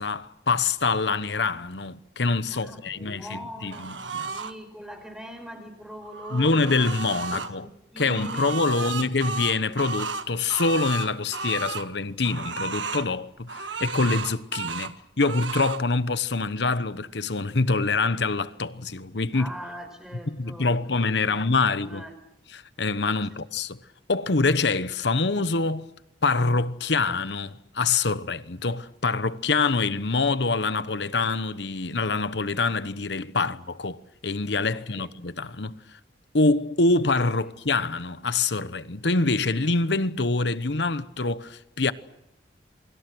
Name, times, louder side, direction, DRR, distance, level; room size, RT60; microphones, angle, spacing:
voice 1, 0.0-4.3 6.3-7.7 8.0-19.5 20.3-22.0 22.5-23.8 24.1-25.9 26.2-36.0 36.3-41.9, left 3 dB, 70° left, 1.1 m, -25 dB
voice 2, 2.5-6.8 7.3-9.0 19.3-22.1 23.0-23.4 34.7-35.1, equal, 5° right, 5.4 m, -42 dB
sound 1, 3.7-4.5 5.9-7.5 8.0-11.9 12.2-13.1 13.5-14.9 15.2-15.8, right 4 dB, 85° right, 1.6 m, -33 dB
28.0 x 24.5 x 6.3 m
head